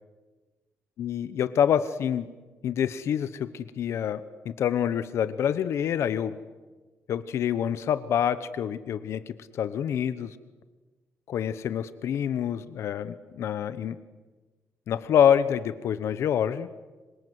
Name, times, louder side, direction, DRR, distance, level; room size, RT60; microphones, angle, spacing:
voice 1, 1.0-2.3 2.6-6.3 7.1-10.4 11.3-14.0 14.9-16.7, left 9 dB, 60° left, 14 dB, 0.9 m, -26 dB
26.5 x 26.0 x 8.1 m, 1.3 s
cardioid pair, 175°, 5 cm